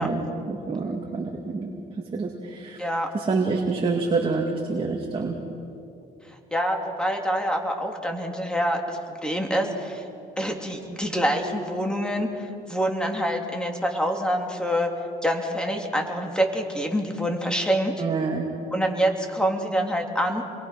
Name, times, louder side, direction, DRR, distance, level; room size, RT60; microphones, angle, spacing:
voice 1, 0.0-1.7 2.1-2.8 3.1-5.4 18.0-18.5, right 4 dB, 35° right, 1 dB, 2.4 m, -27 dB
voice 2, 2.8-3.1 6.5-10.0 10.4-12.3 12.7-14.9 15.2-17.9 18.7-20.4, equal, 5° left, 2 dB, 3.1 m, -26 dB
28.0 x 22.5 x 6.0 m, 2.7 s
cardioid pair, 110°, 17 cm